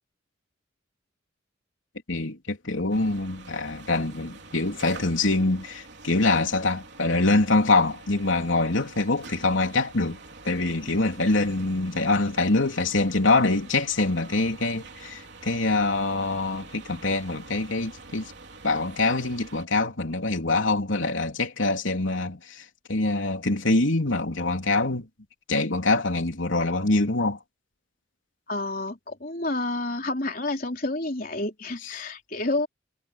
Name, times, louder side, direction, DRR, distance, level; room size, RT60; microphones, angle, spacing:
voice 1, 2.1-10.2 10.4-18.3 18.6-25.1 25.5-27.4 31.9-32.1, left 2 dB, 80° left, 3.3 m, -24 dB
sound 1, 2.9-19.6, right 3 dB, 60° right, 4.0 m, -46 dB
voice 2, 28.5-32.7, left 2 dB, 45° left, 3.7 m, -29 dB
head